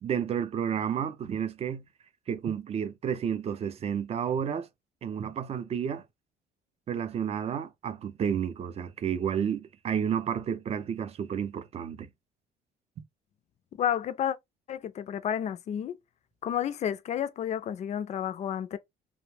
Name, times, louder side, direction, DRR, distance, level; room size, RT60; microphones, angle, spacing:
voice 1, 0.0-1.8 2.3-4.7 5.0-6.0 6.9-12.1, right 8 dB, 40° right, 0.4 m, -31 dB
voice 2, 13.8-14.4 14.7-16.0 16.4-18.8, left 9 dB, 40° left, 0.4 m, -31 dB
2.6 x 2.0 x 3.2 m
cardioid pair, 110°, 17 cm